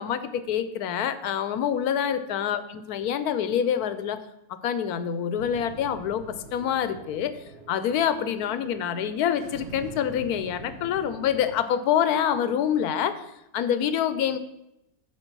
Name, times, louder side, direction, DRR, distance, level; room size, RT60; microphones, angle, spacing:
voice 1, 0.0-4.2 4.5-7.4 7.7-13.2 13.5-14.4, left 9 dB, 90° left, 13 dB, 1.2 m, -26 dB
sound 1, 5.4-11.5, right 4 dB, 85° right, 1.6 m, -45 dB
9.7 x 4.5 x 6.1 m, 0.87 s
omnidirectional pair, 1.6 m